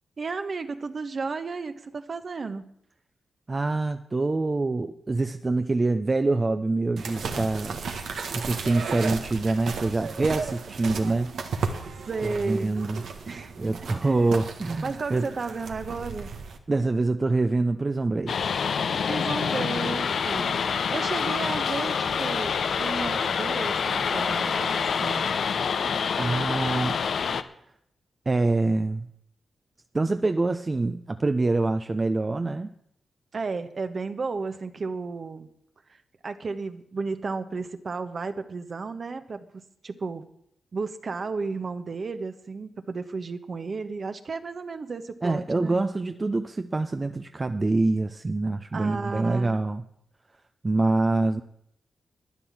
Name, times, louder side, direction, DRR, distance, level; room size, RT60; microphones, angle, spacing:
voice 1, 0.2-2.7 12.1-12.8 13.3-13.5 14.0-14.3 14.8-16.3 19.1-25.3 33.3-35.5 35.9-40.3 40.7-45.8 48.7-49.6, right 4 dB, 55° right, 9 dB, 1.2 m, -33 dB
voice 2, 3.5-7.8 8.3-11.3 12.2-13.0 13.6-15.3 16.7-18.7 26.2-27.0 28.3-29.1 29.9-32.7 45.2-49.8 50.6-51.4, right 3 dB, 35° right, 8 dB, 0.7 m, -25 dB
sound 1, 7.0-16.6, right 5 dB, 80° right, 1.5 m, -34 dB
sound 2, 18.3-27.4, left 6 dB, 70° left, 0.7 m, -26 dB
12.0 x 10.0 x 7.5 m, 0.73 s
cardioid pair, 55°, 0 cm